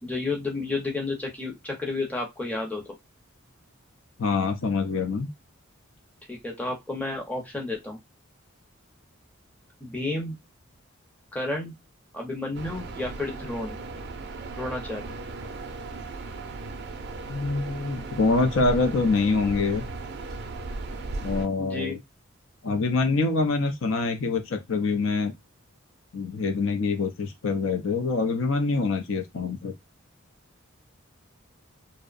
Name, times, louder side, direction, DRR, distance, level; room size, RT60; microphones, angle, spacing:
voice 1, 0.0-2.8 6.3-8.0 9.8-10.4 11.3-11.7 12.1-13.8 14.6-15.1 21.6-22.0, left 2 dB, 10° left, 0.6 m, -31 dB
voice 2, 4.2-5.3 17.3-19.8 21.2-22.0 22.6-25.3 26.1-29.7, left 3 dB, 70° left, 0.5 m, -25 dB
sound 1, 12.5-21.5, right 2 dB, 55° right, 0.4 m, -36 dB
2.6 x 2.1 x 2.4 m
head